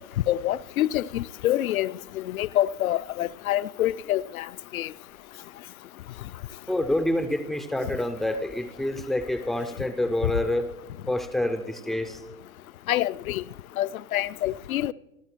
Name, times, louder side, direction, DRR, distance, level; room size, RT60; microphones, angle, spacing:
voice 1, 0.3-4.5 4.7-4.9 12.9-13.4 13.8-14.9, left 13 dB, 65° left, 0.5 m, -26 dB
voice 2, 6.7-10.7 11.1-12.2, left 1 dB, ahead, 0.4 m, -27 dB
27.5 x 12.0 x 3.0 m
figure-of-eight pair, 95°, 45 cm